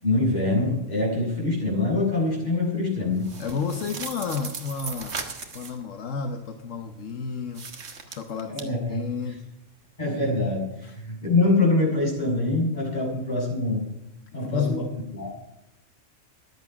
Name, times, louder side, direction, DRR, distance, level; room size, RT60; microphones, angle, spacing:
voice 1, 0.0-3.3 8.5-9.4 10.0-13.9 14.3-14.9 15.1-15.3, left 2 dB, 35° left, -4 dB, 7.0 m, -24 dB
sound 1, 3.2-5.8 7.5-8.6, right 4 dB, 60° right, 1.7 m, -37 dB
voice 2, 3.4-5.2 5.5-7.6 8.0-9.4 10.8-10.9 14.3-14.9, left 6 dB, 75° left, 5 dB, 1.3 m, -31 dB
14.5 x 11.0 x 5.9 m, 0.85 s
omnidirectional pair, 1.3 m